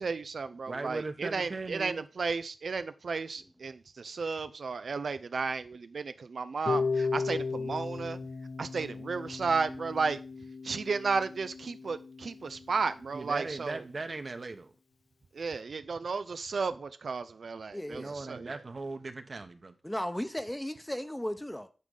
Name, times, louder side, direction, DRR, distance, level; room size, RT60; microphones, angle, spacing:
voice 1, 0.0-8.2 8.6-10.2 10.6-13.8 15.3-18.5, right 4 dB, 80° right, 0.4 m, -33 dB
voice 2, 0.7-2.1 13.1-14.7 17.9-19.7, right 3 dB, 55° right, 1.0 m, -38 dB
Harp, 6.7-12.7, left 4 dB, 90° left, 0.3 m, -35 dB
voice 3, 17.7-18.1 19.8-21.7, equal, 10° left, 0.8 m, -35 dB
9.5 x 3.8 x 5.4 m
wide cardioid pair, 75°, 0 cm